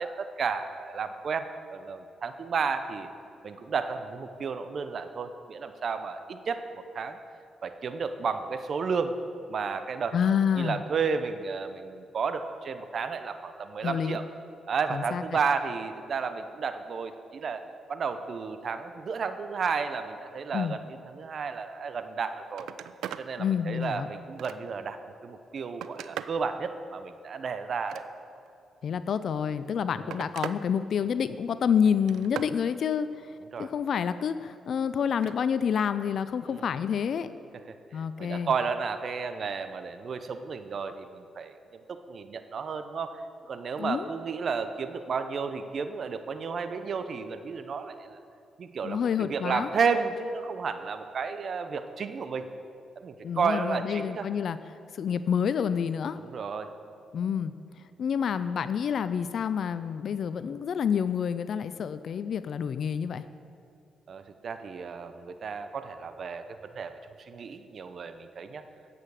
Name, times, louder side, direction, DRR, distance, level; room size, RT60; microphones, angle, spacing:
voice 1, 0.0-3.1 3.4-6.6 6.9-7.2 7.6-9.2 9.5-10.2 10.5-14.2 14.7-17.6 17.9-22.7 23.2-25.0 25.2-28.0 29.9-30.2 33.5-33.7 36.5-36.7 37.7-37.8 38.2-41.5 42.1-43.1 43.5-48.2 48.6-52.5 53.0-54.3 56.2-56.7 64.1-67.0 67.3-68.6, right 5 dB, 60° right, 9 dB, 0.7 m, -32 dB
voice 2, 10.1-10.8 13.8-14.2 14.9-15.2 20.5-20.8 23.4-24.1 28.8-33.1 33.6-37.3 37.9-38.5 43.8-44.1 48.8-49.7 53.2-54.6 54.9-56.2 57.1-57.5 58.0-63.2, left 7 dB, 65° left, 13 dB, 0.4 m, -28 dB
Telephone, 22.1-22.2 22.5-23.3 23.8-24.9 25.4-26.4 27.7-28.5 29.5-30.6 31.0-31.4 31.9-32.6 35.0-35.4 36.8-36.9, right 10 dB, 75° right, 0.3 m, -40 dB
9.6 x 7.7 x 6.4 m, 2.5 s
supercardioid pair, 50°, 0 cm